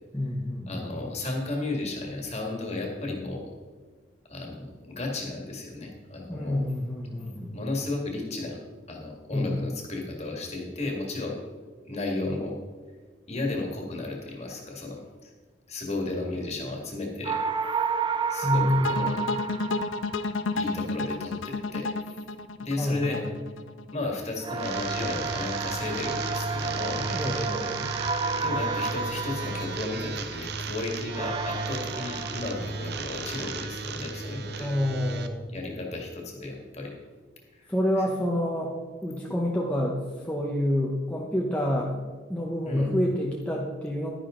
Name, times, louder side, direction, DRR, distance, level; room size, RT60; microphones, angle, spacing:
voice 1, 0.1-1.0 6.3-7.7 9.3-9.6 18.4-19.3 22.8-23.3 27.1-27.9 34.6-35.6 37.7-38.7 39.0-44.1, left 1 dB, 5° left, -3 dB, 0.9 m, -28 dB
voice 2, 0.7-3.4 4.3-6.6 7.5-8.6 8.9-11.4 11.9-12.5 13.3-15.3 15.7-17.4 18.3-19.2 20.5-22.2 22.6-23.2 23.9-27.4 28.4-34.7 35.5-36.9 37.5-37.7 42.6-42.9, left 2 dB, 35° left, 0 dB, 2.0 m, -34 dB
sound 1, 17.2-20.6 24.4-30.5 31.1-33.0 33.3-33.6, right 5 dB, 25° right, 0.4 m, -32 dB
sound 2, 18.8-23.9, left 3 dB, 80° left, 0.5 m, -31 dB
sound 3, 24.5-35.3, right 4 dB, 55° right, 0.7 m, -35 dB
11.5 x 10.0 x 3.8 m, 1.4 s
head